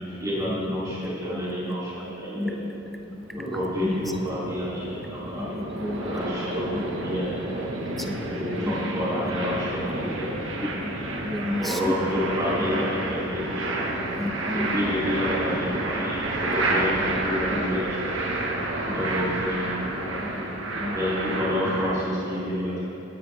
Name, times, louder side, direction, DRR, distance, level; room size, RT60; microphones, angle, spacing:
voice 1, 0.0-1.9 2.2-2.5 3.3-4.8 5.1-5.5 6.0-7.3 8.0-10.3 11.6-13.8 14.5-18.0 18.9-20.1 20.9-22.8, left 1 dB, 15° right, -9 dB, 3.2 m, -29 dB
voice 2, 0.8-1.6 1.9-2.7 4.2-5.0 6.4-7.2 7.5-8.4 9.8-10.5 12.3-13.0 14.6-15.5 17.5-19.1 19.3-19.5 21.9-22.8, right 1 dB, 55° right, -1 dB, 1.8 m, -40 dB
voice 3, 2.3-2.8 3.0-3.4 3.8-4.0 5.4-6.0 6.7-6.9 8.1-8.2 8.6-8.9 10.7-10.9 11.2-11.9 12.7-12.9 14.2-14.9 17.5-17.7 20.2-20.3 20.6-21.0, left 1 dB, ahead, 5 dB, 0.5 m, -32 dB
sound 1, 3.0-21.9, right 2 dB, 75° right, 1.5 m, -30 dB
17.5 x 10.5 x 3.5 m, 2.9 s
head